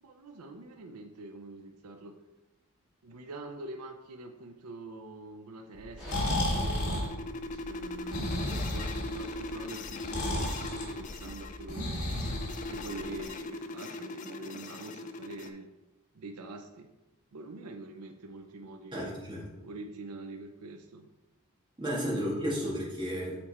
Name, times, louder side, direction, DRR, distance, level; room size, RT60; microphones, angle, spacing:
voice 1, 0.0-2.2 3.0-7.1 7.6-12.2 12.7-15.7 16.1-16.9 17.3-19.2 19.6-21.0, right 2 dB, 85° right, 5 dB, 0.5 m, -45 dB
Breathing, 5.8-13.2, left 1 dB, 80° left, 1.6 m, -33 dB
Gunshot gunfire, 6.0-7.2, equal, ahead, 2.1 m, -48 dB
sound 1, 6.1-15.5, left 2 dB, 35° left, 0.4 m, -40 dB
voice 2, 18.9-19.4 21.8-23.4, equal, 20° right, -6 dB, 1.9 m, -32 dB
7.0 x 4.2 x 4.2 m, 1.1 s
head